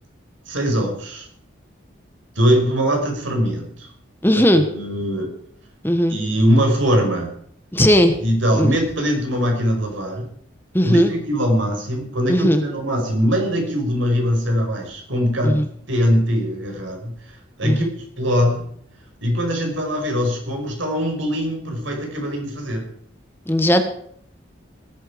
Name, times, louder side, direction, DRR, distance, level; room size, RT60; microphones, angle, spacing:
voice 1, 0.5-1.3 2.4-3.9 4.3-5.3 6.1-7.3 8.2-10.3 10.8-18.7 19.2-22.9, equal, 80° right, 2 dB, 5.8 m, -22 dB
voice 2, 4.2-4.7 5.8-6.2 7.7-8.2 8.6-8.7 10.7-11.1 12.3-12.6 15.4-15.6 17.6-17.9 23.5-23.8, equal, 10° left, 7 dB, 1.2 m, -17 dB
19.0 x 12.0 x 5.1 m, 0.63 s
head